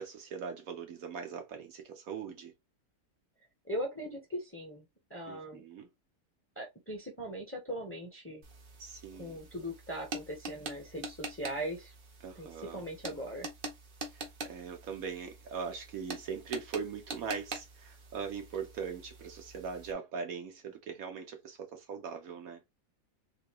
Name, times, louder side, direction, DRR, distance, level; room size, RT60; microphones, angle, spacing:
voice 1, 0.0-2.5 5.3-5.9 8.8-9.4 12.2-12.8 14.1-22.6, right 6 dB, 65° right, 1.1 m, -41 dB
voice 2, 3.7-4.8 5.1-5.6 6.6-8.4 9.2-11.9 12.4-13.5, equal, 10° left, 0.8 m, -39 dB
sound 1, 8.4-19.9, right 3 dB, 45° right, 0.8 m, -45 dB
3.7 x 2.8 x 2.9 m
omnidirectional pair, 1.7 m